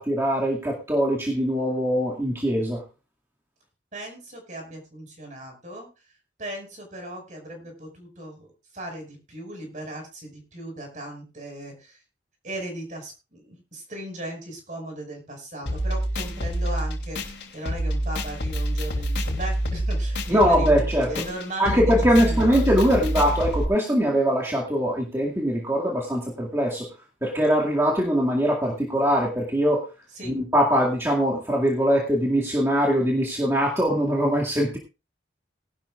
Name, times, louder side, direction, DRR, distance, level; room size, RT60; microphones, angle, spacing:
voice 1, 0.0-2.8 20.3-21.1 21.6-26.9 27.2-29.8 30.2-34.8, equal, 15° right, -3 dB, 2.2 m, -22 dB
voice 2, 3.9-5.9 6.4-8.5 8.7-12.0 12.4-21.8 22.2-22.5 30.2-30.3, right 1 dB, 45° right, 3 dB, 5.5 m, -37 dB
sound 1, 15.7-23.6, right 1 dB, 65° left, 3.1 m, -27 dB
19.5 x 12.0 x 2.4 m, 0.30 s
head